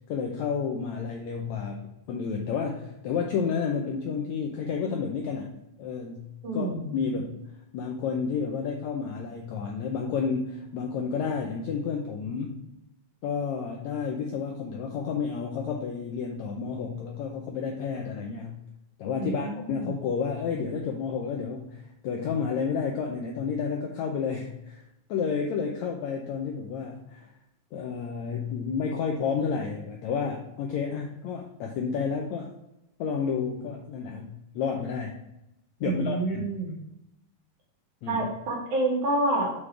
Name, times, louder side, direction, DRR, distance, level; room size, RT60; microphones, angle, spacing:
voice 1, 0.1-1.8 2.1-5.5 5.8-7.4 7.7-12.6 13.2-18.6 19.0-24.8 25.1-27.3 27.7-32.5 33.0-35.2 35.8-36.5 38.0-38.2, left 6 dB, 90° left, 1 dB, 1.6 m, -31 dB
voice 2, 6.4-7.0 19.1-20.0 35.8-36.8 38.1-39.5, right 2 dB, 60° right, -3 dB, 3.4 m, -28 dB
7.4 x 4.8 x 3.3 m, 0.85 s
omnidirectional pair, 4.1 m